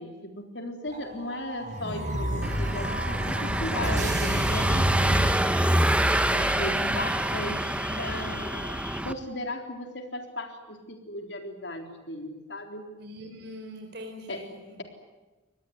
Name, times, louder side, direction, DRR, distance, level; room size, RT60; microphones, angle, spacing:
voice 1, 0.0-5.5 6.3-12.9 14.3-14.5, left 1 dB, 65° left, 5 dB, 3.8 m, -36 dB
sound 1, 0.9-5.9, equal, 40° right, 6.6 m, -30 dB
Car passing by / Engine, 2.4-9.1, right 1 dB, 5° right, 1.1 m, -26 dB
sound 2, 4.0-9.0, left 2 dB, 15° left, 2.0 m, -41 dB
voice 2, 13.0-14.8, equal, 55° right, 3 dB, 4.1 m, -42 dB
26.0 x 20.0 x 9.6 m, 1.2 s
head